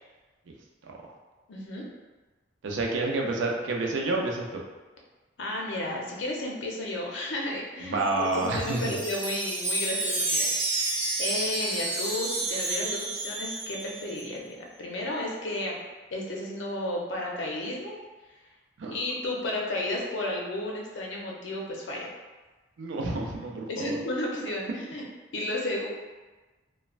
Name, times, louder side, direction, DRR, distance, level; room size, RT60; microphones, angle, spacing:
voice 1, 1.5-1.8 5.4-8.0 8.4-10.5 10.7-15.8 16.1-17.9 18.9-22.1 23.7-25.0 25.3-25.9, left 1 dB, 80° left, -2 dB, 0.6 m, -33 dB
voice 2, 2.6-4.6 7.8-8.9 18.8-19.0 22.8-24.0, right 2 dB, 80° right, 0 dB, 0.4 m, -29 dB
Wind chime, 8.1-14.3, right 2 dB, 45° right, 0.7 m, -30 dB
3.1 x 2.1 x 2.4 m, 1.2 s
head